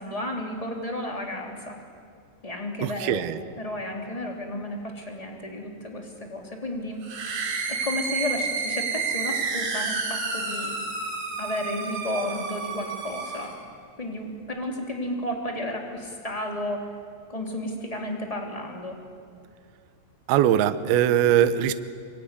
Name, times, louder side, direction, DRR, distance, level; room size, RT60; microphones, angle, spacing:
voice 1, 0.0-1.8 2.4-3.2 3.6-7.0 7.7-10.7 11.4-13.5 14.0-16.9 17.3-19.0, left 1 dB, 10° left, 1 dB, 2.0 m, -32 dB
voice 2, 2.8-3.4 20.3-21.7, right 10 dB, 85° right, 11 dB, 2.2 m, -21 dB
sound 1, 7.0-13.6, right 4 dB, 60° right, 5.9 m, -30 dB
25.0 x 24.0 x 9.9 m, 2.2 s
omnidirectional pair, 5.9 m